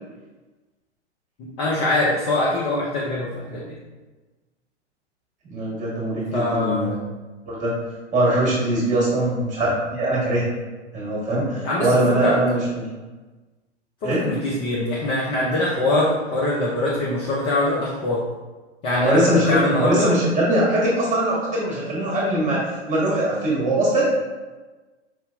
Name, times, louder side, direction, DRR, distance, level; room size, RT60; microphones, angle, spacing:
voice 1, 1.4-3.7 6.3-6.9 11.6-12.3 14.0-18.2 18.8-19.2 19.5-20.1, left 2 dB, 15° left, -5 dB, 0.3 m, -23 dB
voice 2, 5.4-7.0 7.4-7.8 8.1-10.4 10.9-12.9 14.0-14.3 19.0-22.6 22.9-24.1, right 1 dB, 20° right, -5 dB, 1.5 m, -21 dB
4.7 x 2.7 x 2.5 m, 1.2 s
figure-of-eight pair, 105°, 35 cm